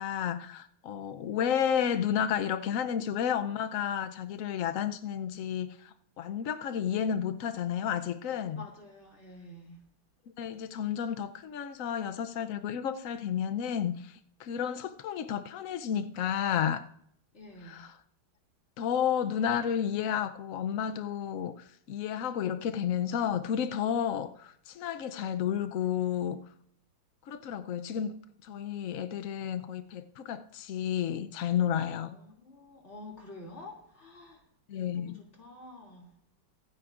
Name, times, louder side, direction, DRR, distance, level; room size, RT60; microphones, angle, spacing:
voice 1, 0.0-5.9 6.2-8.6 10.4-14.1 14.4-16.8 17.7-17.9 18.8-26.4 27.3-28.2 28.5-32.1 34.7-35.2, left 9 dB, 90° left, 0.7 m, -31 dB
voice 2, 8.5-9.8 17.3-17.9 31.9-34.5 34.8-36.2, left 2 dB, 35° left, 2.9 m, -49 dB
24.0 x 9.6 x 2.5 m
omnidirectional pair, 2.2 m